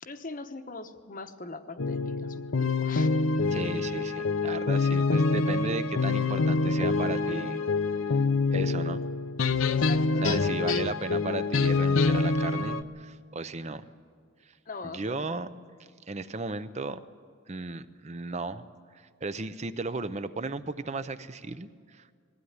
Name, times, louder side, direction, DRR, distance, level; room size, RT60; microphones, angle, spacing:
voice 1, 0.0-3.1 9.7-10.5 14.7-15.3, left 3 dB, 40° left, 9 dB, 1.0 m, -42 dB
sound 1, 1.8-12.8, left 3 dB, 80° left, 0.7 m, -26 dB
voice 2, 3.5-7.6 8.1-8.2 8.5-9.0 10.2-13.8 14.4-14.5 14.8-15.5 16.1-17.0 17.5-18.6 18.9-22.1, right 3 dB, 35° right, 13 dB, 0.6 m, -35 dB
20.5 x 16.0 x 9.6 m, 2.1 s
head